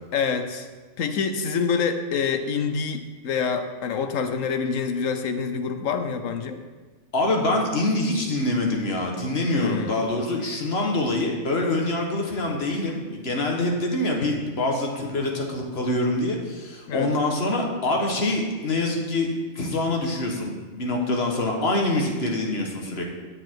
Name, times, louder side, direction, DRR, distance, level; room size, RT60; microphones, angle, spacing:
voice 1, 0.1-0.7 1.0-6.6 9.5-10.0 16.9-17.1, left 6 dB, 80° left, 7 dB, 1.2 m, -26 dB
voice 2, 7.1-19.3 19.5-23.0, left 2 dB, 55° left, 1 dB, 1.5 m, -25 dB
9.7 x 7.4 x 4.5 m, 1.3 s
omnidirectional pair, 1.3 m